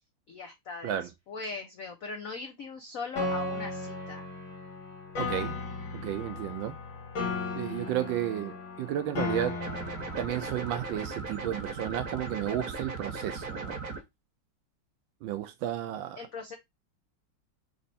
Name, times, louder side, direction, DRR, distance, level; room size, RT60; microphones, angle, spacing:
voice 1, 0.3-4.3 16.2-16.6, left 4 dB, 85° left, 0.7 m, -40 dB
Piano, 3.2-11.1, left 3 dB, 60° left, 2.2 m, -36 dB
voice 2, 5.2-5.6 5.9-6.8 7.5-9.6 10.2-13.8 15.2-16.2, right 12 dB, 75° right, 1.2 m, -33 dB
sound 1, 9.6-14.0, right 4 dB, 55° right, 1.1 m, -37 dB
4.3 x 3.1 x 4.0 m
omnidirectional pair, 2.4 m